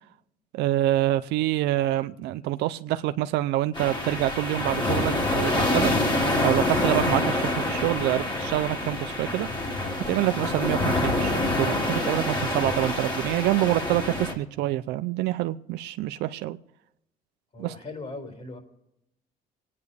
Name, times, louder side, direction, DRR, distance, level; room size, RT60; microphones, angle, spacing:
voice 1, 0.5-6.0 6.4-9.5 10.1-16.6 17.6-17.7, right 15 dB, 90° right, 0.6 m, -26 dB
sound 1, 3.7-14.3, left 1 dB, 25° left, 2.7 m, -26 dB
voice 2, 17.5-18.6, left 3 dB, 40° left, 4.3 m, -39 dB
26.5 x 9.6 x 3.4 m
cardioid pair, 110°, 17 cm